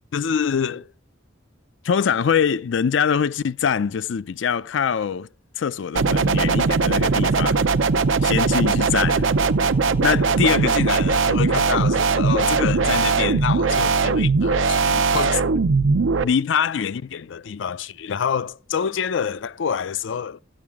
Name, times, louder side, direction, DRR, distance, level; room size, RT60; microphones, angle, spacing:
voice 1, 0.1-0.8 1.8-5.3 5.6-7.7 8.2-9.3 10.0-15.4 16.2-20.4, left 7 dB, 70° left, 0.4 m, -24 dB
sound 1, 6.0-16.2, right 4 dB, 85° right, 0.6 m, -20 dB
14.0 x 8.8 x 3.5 m
head